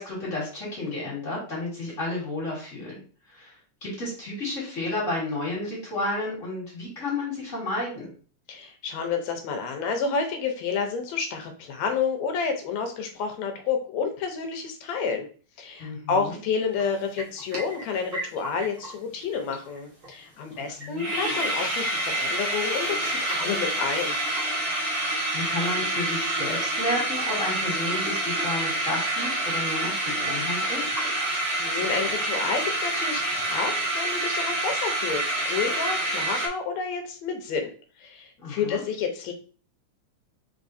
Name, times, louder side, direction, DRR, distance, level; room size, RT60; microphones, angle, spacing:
voice 1, 0.0-3.0 3.3-3.5 3.8-8.1 15.8-16.4 20.5-21.1 25.0-30.8 38.4-38.8, left 2 dB, 30° left, -6 dB, 1.8 m, -32 dB
voice 2, 8.5-15.3 15.6-24.2 31.3-37.7 38.0-39.3, left 5 dB, 70° left, 5 dB, 1.9 m, -30 dB
sound 1, 16.8-16.9 17.2-18.9 19.2-19.3 19.5-19.8 20.0-20.1 20.5-20.6 20.8-36.5, right 1 dB, 85° right, 0.6 m, -27 dB
4.9 x 3.6 x 2.6 m, 0.40 s
omnidirectional pair, 3.4 m